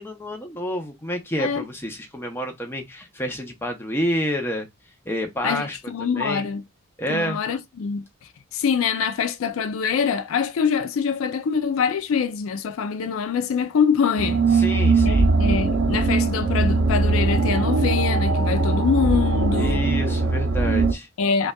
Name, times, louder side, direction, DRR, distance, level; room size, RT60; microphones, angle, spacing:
voice 1, 0.0-4.7 5.1-6.5 7.0-7.4 14.5-15.3 19.6-21.1, equal, 10° left, 0.6 m, -29 dB
voice 2, 5.4-6.6 7.1-8.0 8.5-14.6 15.0-19.9 21.2-21.5, left 6 dB, 70° left, 0.4 m, -24 dB
sound 1, 14.2-20.9, right 3 dB, 60° right, 0.5 m, -20 dB
5.2 x 2.3 x 2.2 m
head